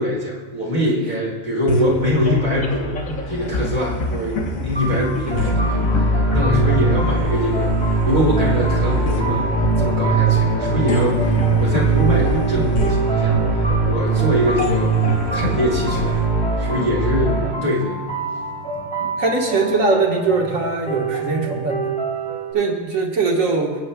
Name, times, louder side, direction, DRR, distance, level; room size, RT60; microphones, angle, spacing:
voice 1, 0.0-3.0 3.3-9.5 9.8-14.9 15.3-16.3 16.6-18.0 19.0-19.1, equal, 35° right, -4 dB, 2.2 m, -23 dB
sound 1, 1.7-17.3, left 1 dB, 85° left, 1.6 m, -27 dB
sound 2, 4.7-22.5, right 3 dB, 5° left, 3.7 m, -29 dB
sound 3, 5.3-17.5, right 3 dB, 35° left, 1.5 m, -20 dB
voice 2, 19.2-21.9 22.5-23.8, right 3 dB, 85° right, 0 dB, 1.8 m, -21 dB
24.0 x 8.6 x 2.2 m, 1.3 s
omnidirectional pair, 1.4 m